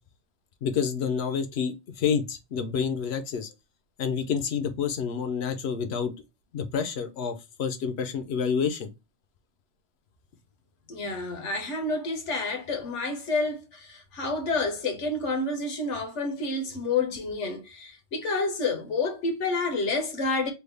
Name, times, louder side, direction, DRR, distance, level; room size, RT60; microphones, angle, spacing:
voice 1, 0.6-3.5 4.0-6.1 6.5-8.9, left 6 dB, 65° left, 0.8 m, -28 dB
voice 2, 10.9-20.5, left 3 dB, 85° left, 1.3 m, -29 dB
3.4 x 2.3 x 3.2 m
omnidirectional pair, 1.2 m